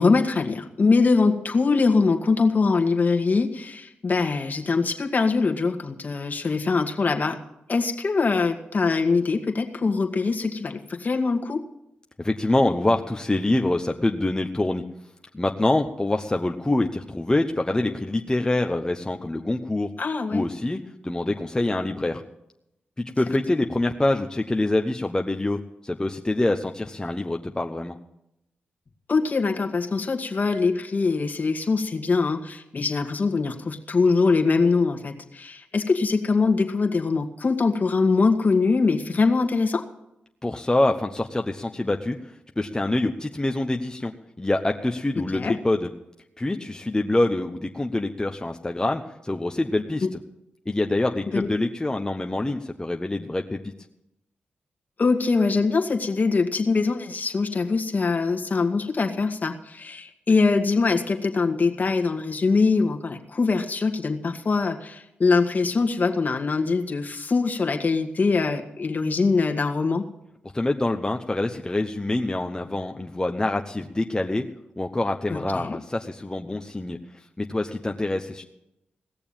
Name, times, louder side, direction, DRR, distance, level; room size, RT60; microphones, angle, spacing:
voice 1, 0.0-7.4 7.7-11.6 20.0-20.5 29.1-39.8 45.3-45.5 51.3-51.5 55.0-70.1 75.3-75.8, left 4 dB, 45° left, 4 dB, 1.7 m, -23 dB
voice 2, 12.2-14.8 15.3-19.9 20.3-22.2 23.0-28.0 40.4-44.1 44.4-45.9 46.4-50.1 50.7-53.7 70.5-74.4 74.8-77.0 77.4-78.4, left 2 dB, 20° left, 4 dB, 0.9 m, -25 dB
18.0 x 6.9 x 8.9 m, 0.84 s
supercardioid pair, 50°, 4 cm